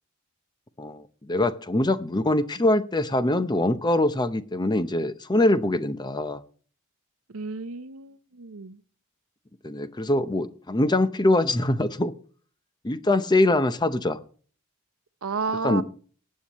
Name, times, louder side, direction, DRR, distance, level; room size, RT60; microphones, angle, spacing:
voice 1, 0.8-6.4 9.6-12.1 12.8-14.2 15.6-15.8, left 2 dB, 20° left, 0.7 m, -23 dB
voice 2, 7.3-8.8 15.2-15.8, right 4 dB, 85° right, 0.8 m, -32 dB
19.0 x 8.5 x 3.1 m
head